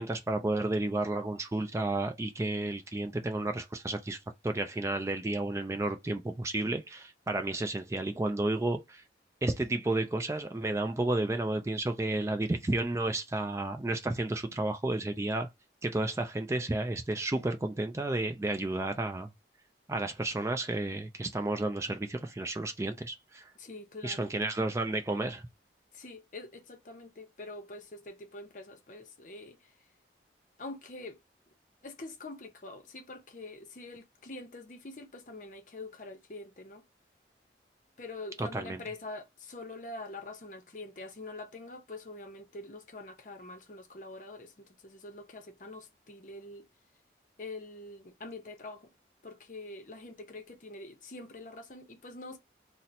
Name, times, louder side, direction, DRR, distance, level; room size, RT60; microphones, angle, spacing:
voice 1, 0.0-4.2 4.4-9.0 9.4-15.5 15.8-19.3 19.9-23.5 24.0-25.4 38.4-38.8, right 2 dB, 15° right, 0.3 m, -32 dB
voice 2, 23.6-24.3 25.9-29.7 30.6-31.2 31.8-36.8 38.0-46.7 47.4-48.9 49.2-52.4, left 2 dB, 45° left, 0.7 m, -45 dB
2.8 x 2.1 x 4.0 m
head